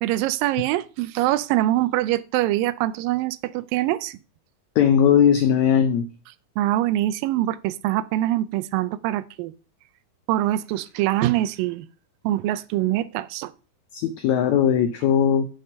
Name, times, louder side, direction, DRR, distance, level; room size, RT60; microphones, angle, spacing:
voice 1, 0.0-4.2 6.6-9.5 10.3-11.9 12.2-13.5, right 15 dB, 80° right, 2.3 m, -24 dB
voice 2, 4.8-6.1 13.9-15.5, left 8 dB, 85° left, 1.6 m, -19 dB
9.3 x 5.3 x 5.4 m
omnidirectional pair, 4.1 m